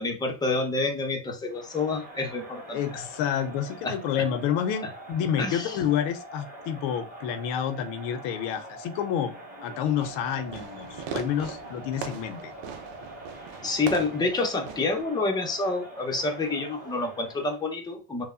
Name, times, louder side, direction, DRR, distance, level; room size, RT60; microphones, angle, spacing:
voice 1, 0.0-3.0 3.8-3.9 5.4-5.8 13.6-18.2, left 3 dB, 10° left, 0.6 m, -28 dB
Crowd, 1.5-17.6, right 1 dB, 20° right, 1.4 m, -44 dB
voice 2, 2.7-9.3 9.6-12.4, left 9 dB, 85° left, 0.6 m, -29 dB
Fireworks, 9.9-15.0, right 7 dB, 80° right, 0.6 m, -40 dB
2.9 x 2.0 x 2.3 m
supercardioid pair, 95°, 46 cm